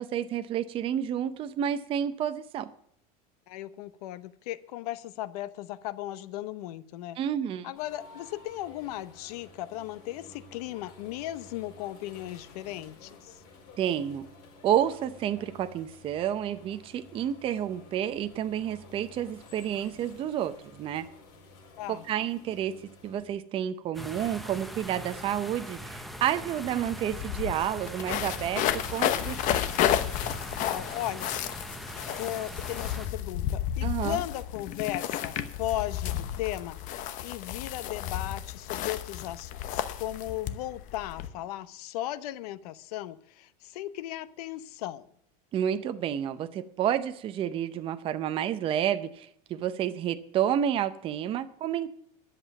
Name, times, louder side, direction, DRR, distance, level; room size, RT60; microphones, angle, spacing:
voice 1, 0.0-2.7 7.2-7.7 13.8-14.3 14.6-21.1 21.9-22.8 23.0-29.6 33.8-34.2 45.5-51.9, right 10 dB, 30° right, 10 dB, 0.6 m, -30 dB
voice 2, 3.5-7.2 7.6-13.4 21.8-22.1 30.6-31.3 32.2-45.1, left 14 dB, 90° left, 15 dB, 0.9 m, -36 dB
sound 1, 7.7-23.3, left 3 dB, 70° left, 5.0 m, -52 dB
sound 2, 23.9-33.1, equal, ahead, 0.8 m, -41 dB
sound 3, 26.5-26.6 26.9-41.3, left 11 dB, 45° left, 0.9 m, -32 dB
11.0 x 7.6 x 7.1 m, 0.68 s
cardioid pair, 165°, 19 cm